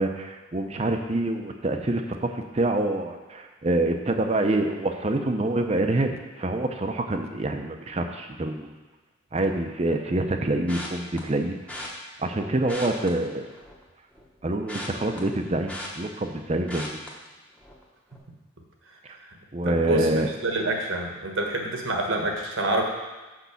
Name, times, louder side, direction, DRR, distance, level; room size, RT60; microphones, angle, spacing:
voice 1, 0.0-8.7 9.3-11.5 12.2-13.5 14.4-17.0 19.5-20.3, right 2 dB, 30° right, 5 dB, 0.6 m, -26 dB
sound 1, 10.7-11.2 11.7-11.9 12.6-13.8 14.1-16.4 16.7-17.1 17.6-17.8 18.1-18.2, left 1 dB, 5° left, 0.9 m, -38 dB
voice 2, 19.6-22.8, right 1 dB, 75° right, 2 dB, 1.3 m, -27 dB
6.2 x 5.4 x 6.9 m, 1.2 s
head